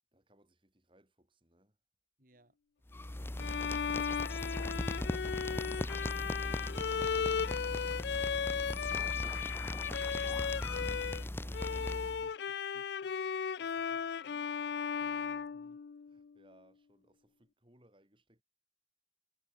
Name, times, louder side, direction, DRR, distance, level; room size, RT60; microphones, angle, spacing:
voice 1, 0.1-1.8 13.6-14.6 16.1-18.4, right 1 dB, 30° right, 5.9 m, -69 dB
voice 2, 2.2-2.6 9.5-13.2 15.0-15.8, right 1 dB, 50° right, 4.9 m, -65 dB
sound 1, 2.9-12.3, left 1 dB, 15° left, 0.6 m, -38 dB
Bowed string instrument, 3.4-11.2 11.5-16.3, left 7 dB, 75° left, 0.4 m, -36 dB
head